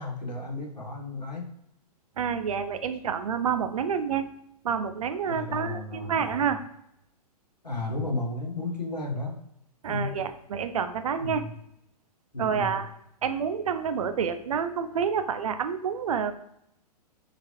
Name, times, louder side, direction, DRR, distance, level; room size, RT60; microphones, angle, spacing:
voice 1, 0.0-1.5 5.3-6.4 7.6-9.4 9.9-10.2 11.2-11.5 12.3-12.8, left 3 dB, 90° left, 0 dB, 0.8 m, -33 dB
voice 2, 2.2-4.3 4.6-6.6 9.8-11.4 12.4-12.9 13.2-16.3, right 7 dB, 60° right, 9 dB, 0.4 m, -28 dB
3.8 x 2.5 x 2.8 m, 0.76 s
figure-of-eight pair, 115°, 21 cm